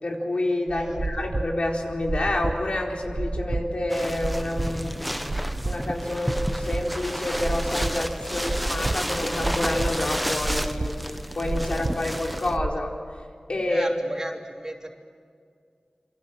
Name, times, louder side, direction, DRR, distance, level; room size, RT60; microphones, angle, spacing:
voice 1, 0.0-4.9 5.6-12.9 13.5-13.9, left 1 dB, 70° left, 0 dB, 4.3 m, -28 dB
sound 1, 0.7-12.7, right 2 dB, 55° right, 1.5 m, -31 dB
sound 2, 3.9-12.6, equal, ahead, 1.0 m, -32 dB
voice 2, 13.7-14.9, right 1 dB, 30° right, 2 dB, 3.1 m, -35 dB
27.0 x 26.0 x 7.6 m, 2.2 s
wide cardioid pair, 65°, 2 cm